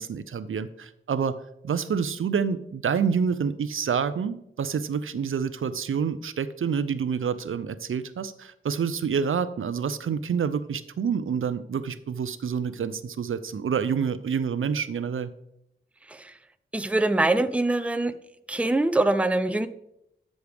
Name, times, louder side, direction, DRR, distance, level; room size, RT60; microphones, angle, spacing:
voice 1, 0.0-15.3, right 6 dB, 75° right, 14 dB, 0.6 m, -28 dB
voice 2, 16.7-18.1 18.5-19.7, right 2 dB, 5° right, 10 dB, 0.5 m, -23 dB
13.0 x 6.3 x 3.5 m, 0.78 s
wide cardioid pair, 115°, 21 cm